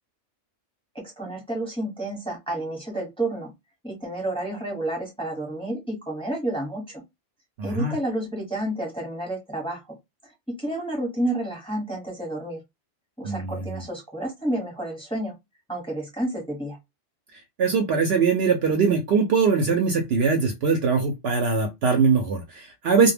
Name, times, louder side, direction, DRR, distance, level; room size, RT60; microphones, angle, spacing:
voice 1, 1.2-3.5 3.8-7.0 7.6-10.0 10.2-12.6 13.2-15.3 15.7-16.8, right 1 dB, 5° left, 0.8 m, -30 dB
voice 2, 7.6-7.9 13.2-13.8 17.6-23.1, right 5 dB, 65° right, 0.7 m, -22 dB
2.2 x 2.1 x 3.2 m
omnidirectional pair, 1.3 m